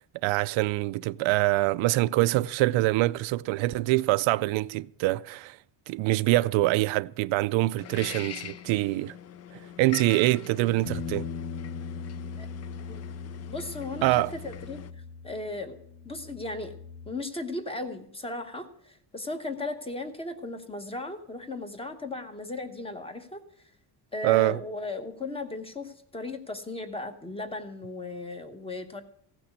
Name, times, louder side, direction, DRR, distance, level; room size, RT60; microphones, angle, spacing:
voice 1, 0.2-5.6 5.9-9.1 9.8-11.3 14.0-14.3 24.2-24.6, right 18 dB, 90° right, 0.5 m, -24 dB
sound 1, 7.8-14.9, left 9 dB, 35° left, 0.4 m, -44 dB
sound 2, 10.9-17.1, left 5 dB, 55° left, 1.1 m, -39 dB
voice 2, 13.5-14.8 15.2-15.8 16.0-16.7 17.1-23.4 24.1-29.0, left 2 dB, 10° left, 1.0 m, -36 dB
16.0 x 6.1 x 8.0 m
cardioid pair, 175°, 45 cm